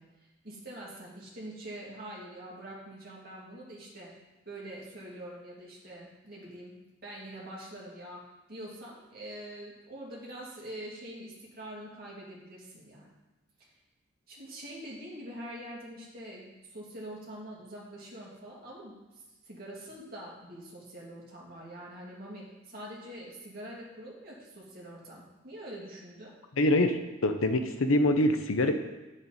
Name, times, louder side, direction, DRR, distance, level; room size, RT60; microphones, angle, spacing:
voice 1, 0.0-4.1 4.5-6.7 7.0-8.2 8.5-13.1 14.3-26.3, right 1 dB, 50° right, -4 dB, 2.5 m, -44 dB
voice 2, 26.6-28.7, left 1 dB, 85° left, 7 dB, 0.8 m, -25 dB
8.2 x 7.3 x 4.2 m, 1.1 s
head